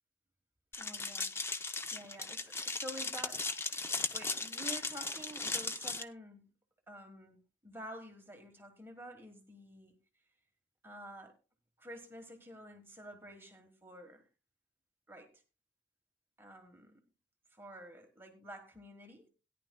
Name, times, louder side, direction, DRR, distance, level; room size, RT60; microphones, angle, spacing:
sound 1, 0.7-6.0, left 3 dB, 15° left, 0.6 m, -37 dB
voice 1, 0.8-3.4 3.9-6.5 6.9-9.9 10.8-11.4 11.8-14.3 15.1-15.4 16.4-17.0 17.5-19.3, equal, 10° right, 3 dB, 1.3 m, -50 dB
17.5 x 10.5 x 2.2 m, 0.31 s
head